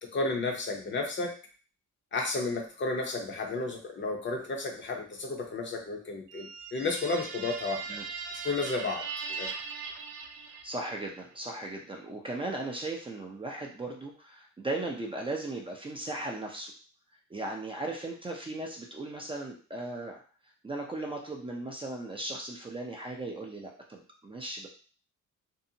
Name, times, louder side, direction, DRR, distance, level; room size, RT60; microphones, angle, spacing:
voice 1, 0.0-1.4 2.1-8.0 8.4-9.6, left 3 dB, 40° left, 1 dB, 0.7 m, -32 dB
sound 1, 6.3-11.0, right 5 dB, 90° right, 0.5 m, -39 dB
voice 2, 10.6-16.7 17.3-20.2 20.6-24.7, right 2 dB, 15° right, 0 dB, 0.5 m, -37 dB
2.7 x 2.0 x 2.7 m, 0.39 s
cardioid pair, 90°, 30 cm